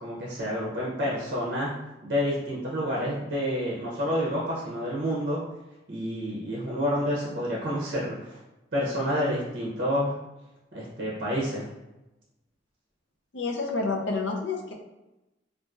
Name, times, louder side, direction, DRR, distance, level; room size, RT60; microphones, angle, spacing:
voice 1, 0.0-1.7 2.0-5.4 5.9-8.4 8.7-10.1 10.7-11.7, equal, 50° right, -5 dB, 0.7 m, -29 dB
voice 2, 13.3-14.7, left 3 dB, 75° left, 1 dB, 0.5 m, -29 dB
4.0 x 2.4 x 2.4 m, 1.0 s
head